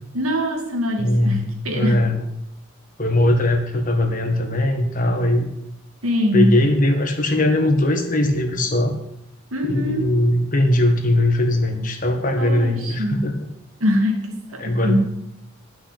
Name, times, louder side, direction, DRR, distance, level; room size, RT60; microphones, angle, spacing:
voice 1, 0.1-2.1 6.0-6.6 9.5-10.2 12.4-13.3 13.8-15.0, equal, 85° right, 2 dB, 2.5 m, -23 dB
voice 2, 1.0-2.2 3.0-5.5 6.3-9.0 9.6-13.4 14.6-15.0, left 1 dB, 40° left, 4 dB, 1.7 m, -20 dB
11.0 x 6.5 x 8.5 m, 0.78 s
head